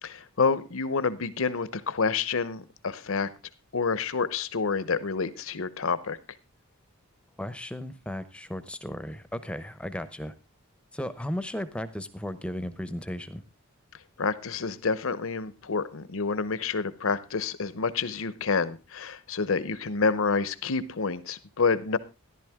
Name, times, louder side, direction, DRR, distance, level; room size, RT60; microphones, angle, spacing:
voice 1, 0.0-3.3 3.7-6.2 14.2-22.0, left 4 dB, 65° left, 15 dB, 0.8 m, -28 dB
voice 2, 7.4-10.3 10.9-13.4, left 1 dB, 5° left, 12 dB, 0.7 m, -35 dB
13.5 x 11.5 x 3.6 m, 0.28 s
head